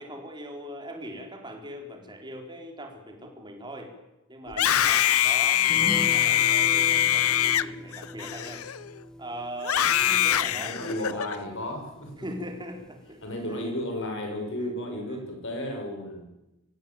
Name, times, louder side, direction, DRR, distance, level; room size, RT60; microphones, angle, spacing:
voice 1, 0.0-3.9 4.3-8.7 9.2-11.3 12.2-13.7 14.6-14.8 15.1-15.3, right 1 dB, 20° right, 3 dB, 4.2 m, -41 dB
Screaming, 4.5-9.0 9.6-11.4, left 11 dB, 75° left, 0.7 m, -23 dB
sound 1, 5.7-12.5 12.8-12.9 13.2-13.4, left 1 dB, 5° left, 1.8 m, -40 dB
voice 2, 10.5-12.1 13.2-16.3, left 1 dB, 55° left, 3 dB, 6.4 m, -33 dB
24.5 x 16.0 x 9.2 m, 0.95 s
head